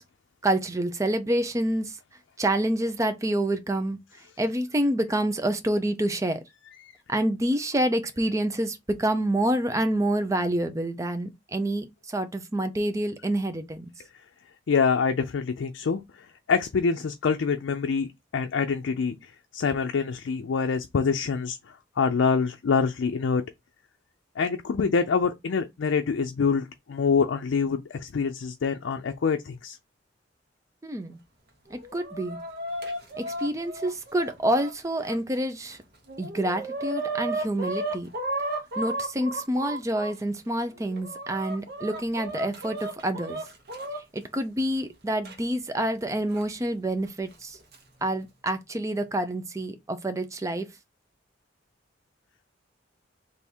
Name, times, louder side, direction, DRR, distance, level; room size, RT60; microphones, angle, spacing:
voice 1, 0.4-1.9 2.4-4.0 4.4-6.4 7.1-13.9 30.8-31.2 31.7-32.4 33.2-35.8 36.2-38.1 38.8-43.4 44.1-47.6 48.0-50.7, right 1 dB, 15° right, 0.5 m, -27 dB
voice 2, 14.7-23.4 24.4-29.8, left 5 dB, 85° left, 0.4 m, -26 dB
Chicken rooster, 31.7-35.2 35.7-35.8 36.1-40.1 40.7-44.0 45.2-45.3 46.3-46.4 47.4-47.8, right 1 dB, 55° right, 1.0 m, -34 dB
3.5 x 2.6 x 4.2 m
head